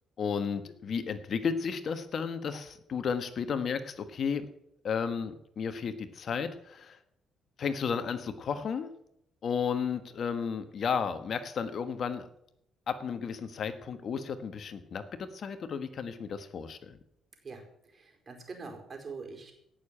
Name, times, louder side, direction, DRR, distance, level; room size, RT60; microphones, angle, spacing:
voice 1, 0.2-4.4 4.8-7.0 7.6-8.9 9.4-12.3 12.9-17.0, left 6 dB, 55° left, 10 dB, 1.3 m, -33 dB
voice 2, 17.4-19.5, right 4 dB, 40° right, 3 dB, 4.6 m, -44 dB
17.0 x 6.9 x 8.8 m, 0.75 s
cardioid pair, 90°, 0 cm